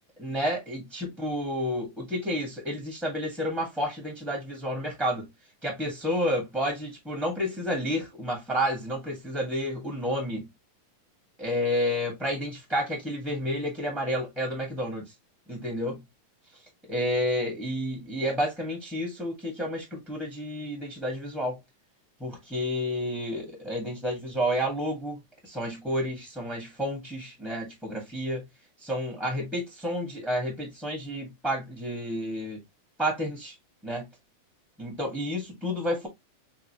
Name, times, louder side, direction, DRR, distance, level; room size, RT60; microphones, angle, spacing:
voice 1, 0.2-5.3 5.6-10.5 11.4-15.1 15.5-16.0 16.9-21.6 22.2-28.5 28.8-32.6 33.0-33.5 33.8-34.1 34.8-36.1, equal, ahead, 0.6 m, -30 dB
5.8 x 2.5 x 3.0 m
omnidirectional pair, 4.1 m